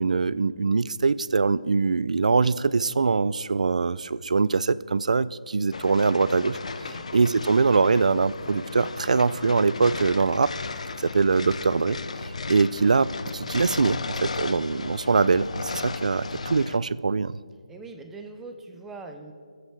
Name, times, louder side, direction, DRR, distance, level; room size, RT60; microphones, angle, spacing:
voice 1, 0.0-10.5 11.0-17.4, right 4 dB, 75° right, 18 dB, 0.3 m, -23 dB
sound 1, 5.7-16.8, left 4 dB, 65° left, 0.5 m, -35 dB
voice 2, 17.7-19.3, right 3 dB, 5° right, 4 dB, 0.4 m, -42 dB
23.5 x 8.0 x 3.3 m, 2.1 s
hypercardioid pair, 170°, 4 cm